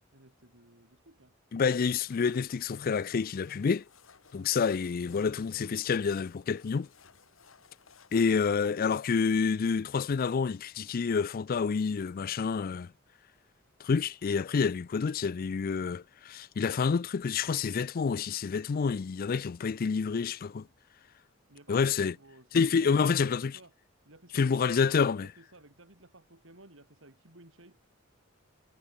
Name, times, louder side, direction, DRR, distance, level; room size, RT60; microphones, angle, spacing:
voice 1, 0.0-1.3 21.5-23.7 24.0-27.8, right 2 dB, 70° right, 4.4 m, -55 dB
voice 2, 1.5-3.8 4.3-6.9 8.1-12.9 13.8-20.7 21.7-22.1 22.5-23.5 24.3-25.3, left 5 dB, 45° left, 0.4 m, -28 dB
sound 1, 1.9-9.5, left 6 dB, 85° left, 2.0 m, -59 dB
head